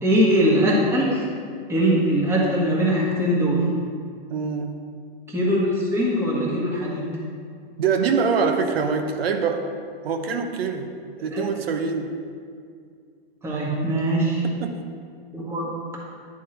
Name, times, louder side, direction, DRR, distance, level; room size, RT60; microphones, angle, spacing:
voice 1, 0.0-1.2 1.7-3.7 5.3-7.2 11.2-11.5 13.4-14.4 15.3-15.8, equal, 10° right, -5 dB, 1.3 m, -21 dB
voice 2, 4.3-4.8 7.8-9.7 10.0-10.9 11.2-12.1 14.6-14.8, right 5 dB, 80° right, 5 dB, 0.8 m, -24 dB
10.0 x 3.6 x 4.4 m, 2.2 s
hypercardioid pair, 135°, 29 cm